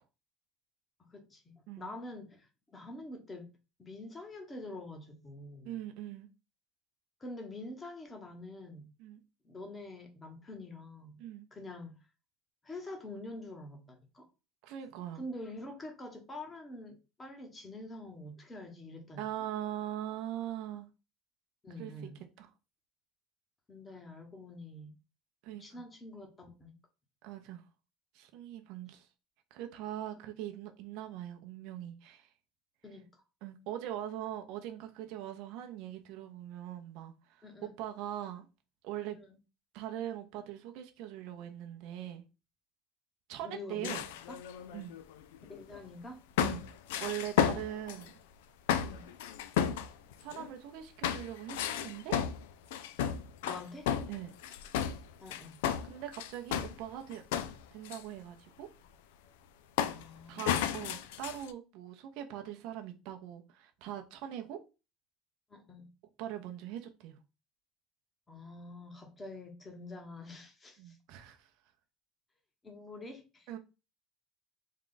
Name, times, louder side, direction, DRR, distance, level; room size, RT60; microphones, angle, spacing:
voice 1, 1.0-3.5 3.8-5.8 7.2-8.9 9.4-11.2 11.5-12.0 12.6-14.3 15.1-19.2 21.6-22.2 23.7-24.9 25.6-26.7 32.8-33.2 37.4-37.7 39.1-39.3 43.4-44.0 44.3-44.4 45.5-46.2 48.8-49.1 53.4-53.9 55.2-55.6 59.8-60.7 65.5-65.9 68.3-71.0 72.6-73.6, left 2 dB, 20° left, 1.1 m, -46 dB
voice 2, 5.6-6.3 9.0-9.2 11.2-11.5 14.6-15.2 19.2-20.9 21.8-21.9 22.4-22.5 25.4-25.8 27.2-27.6 28.1-29.1 29.5-32.3 33.4-37.5 37.8-38.4 38.8-39.2 39.7-42.2 43.3-44.0 44.7-45.0 46.4-46.7 47.0-48.1 50.2-52.2 54.1-54.3 55.8-57.2 57.7-58.7 60.3-64.6 66.2-67.2 70.8-71.5 73.5-73.6, right 11 dB, 70° right, 0.6 m, -41 dB
sound 1, 43.8-45.8 46.4-48.1 48.7-50.5 51.0-56.8 57.1-58.0 59.8-60.1 60.4-61.5, left 9 dB, 90° left, 0.3 m, -33 dB
3.7 x 2.4 x 3.8 m
supercardioid pair, 115°, 0 cm